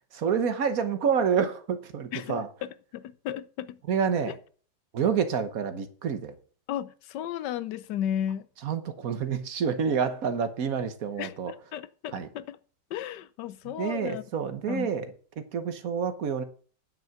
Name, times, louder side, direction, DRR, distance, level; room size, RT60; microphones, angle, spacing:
voice 1, 0.1-2.5 3.9-4.4 4.9-6.3 8.6-11.5 12.1-12.3 13.7-15.1 15.4-16.4, right 6 dB, 55° right, 1.4 m, -28 dB
voice 2, 2.1-3.8 6.7-8.5 11.2-12.6 12.9-14.2 14.7-14.9, left 10 dB, 75° left, 1.3 m, -34 dB
9.8 x 6.3 x 5.8 m
omnidirectional pair, 1.9 m